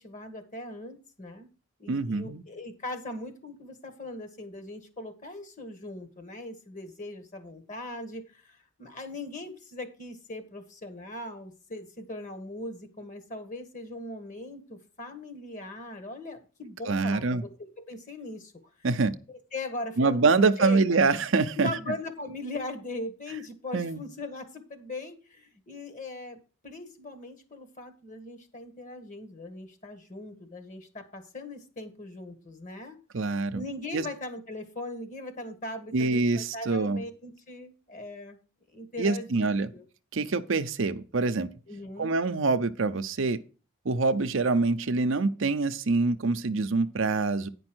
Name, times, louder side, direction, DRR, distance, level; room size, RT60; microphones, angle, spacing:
voice 1, 0.0-1.5 1.8-18.5 19.3-20.8 21.5-26.4 26.6-33.0 33.5-38.4 38.7-39.8 41.7-42.2, left 2 dB, 35° left, 1.6 m, -40 dB
voice 2, 1.9-2.4 16.9-17.4 18.8-19.1 20.0-21.7 23.7-24.0 33.1-33.6 33.9-34.0 35.9-37.0 39.0-39.7 40.1-41.5 42.0-43.4 43.8-47.5, right 3 dB, 65° right, 0.6 m, -25 dB
9.7 x 5.3 x 6.1 m
head